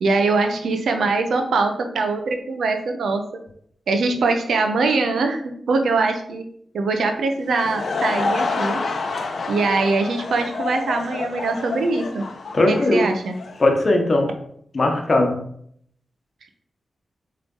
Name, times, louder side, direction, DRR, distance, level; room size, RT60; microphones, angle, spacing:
voice 1, 0.0-3.4 3.9-6.5 6.7-8.8 9.5-12.3 12.7-13.4, right 3 dB, 80° right, 5 dB, 0.8 m, -22 dB
Laughter / Crowd, 7.4-13.7, left 3 dB, 55° left, 0.6 m, -28 dB
voice 2, 12.5-13.1 13.6-14.3 14.7-15.4, left 2 dB, 35° left, 3 dB, 1.0 m, -18 dB
7.5 x 3.3 x 3.8 m, 0.66 s
wide cardioid pair, 150°, 0 cm